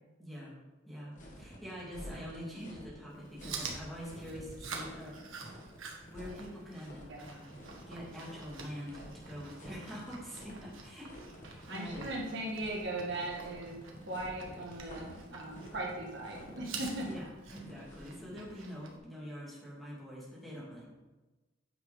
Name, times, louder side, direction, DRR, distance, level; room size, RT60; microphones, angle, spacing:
voice 1, 0.2-0.5 0.8-5.2 6.1-7.6 7.8-12.1 12.5-12.6 17.0-20.9, equal, ahead, -6 dB, 2.6 m, -45 dB
sound 1, 1.1-18.2, equal, 40° left, 1.6 m, -51 dB
Chewing mastication, 3.1-19.0, right 4 dB, 85° right, 1.4 m, -48 dB
voice 2, 11.7-13.8 14.1-17.1, right 2 dB, 60° right, -2 dB, 1.9 m, -38 dB
9.0 x 5.8 x 5.1 m, 1.1 s
head